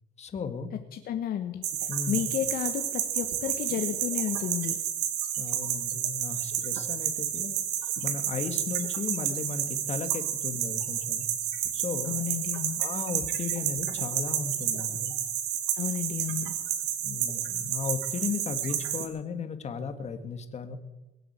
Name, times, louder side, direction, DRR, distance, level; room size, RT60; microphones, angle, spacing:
voice 1, 0.2-0.7 1.9-2.2 5.4-7.5 8.0-11.2 11.7-12.2 12.8-15.1 17.0-20.8, left 6 dB, 40° left, 8 dB, 2.0 m, -35 dB
voice 2, 0.9-4.8 12.0-12.8 15.8-16.5, left 10 dB, 60° left, 7 dB, 1.2 m, -32 dB
sound 1, 1.6-19.1, right 10 dB, 85° right, 2.1 m, -31 dB
22.0 x 7.8 x 8.2 m, 1.0 s
cardioid pair, 110°, 17 cm